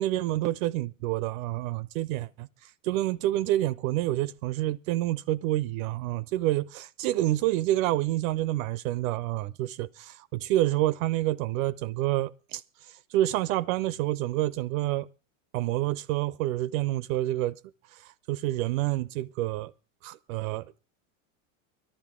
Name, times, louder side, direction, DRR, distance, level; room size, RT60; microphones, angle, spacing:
voice 1, 0.0-15.1 15.5-17.5 17.9-19.7 20.0-20.8, right 15 dB, 75° right, 0.6 m, -28 dB
18.5 x 12.5 x 3.6 m
supercardioid pair, 125°, 41 cm